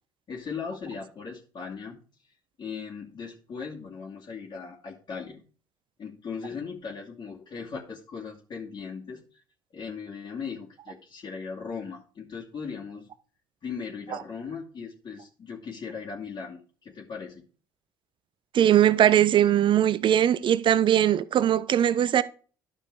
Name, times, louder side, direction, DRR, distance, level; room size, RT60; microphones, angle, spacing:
voice 1, 0.3-2.0 2.6-5.4 6.0-9.4 9.7-13.1 13.6-17.4, left 5 dB, 45° left, 2.7 m, -38 dB
voice 2, 18.5-22.2, right 10 dB, 50° right, 0.7 m, -20 dB
11.0 x 5.3 x 4.8 m
hypercardioid pair, 60°, 11 cm